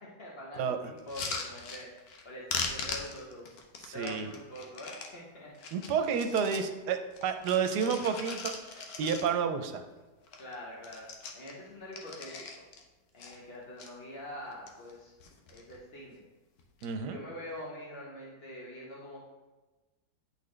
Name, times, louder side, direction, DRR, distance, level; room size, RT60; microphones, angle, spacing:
voice 1, 0.0-1.9 2.2-3.5 3.9-5.5 10.4-11.1 11.3-12.3 13.1-15.1 15.5-16.2 17.1-19.2, left 1 dB, 40° left, -4 dB, 1.1 m, -44 dB
sound 1, 1.0-2.2 2.5-5.1 5.6-6.7 7.1-9.6 9.9-10.0 10.2-10.5 10.8-12.8 13.2-13.9 14.4-14.9 15.2-15.8 16.6-16.9, left 4 dB, 70° left, 1.2 m, -40 dB
voice 2, 3.8-4.3 5.7-9.8 16.8-17.2, right 6 dB, 80° right, 7 dB, 1.2 m, -30 dB
9.5 x 4.1 x 3.2 m, 1.2 s
omnidirectional pair, 1.8 m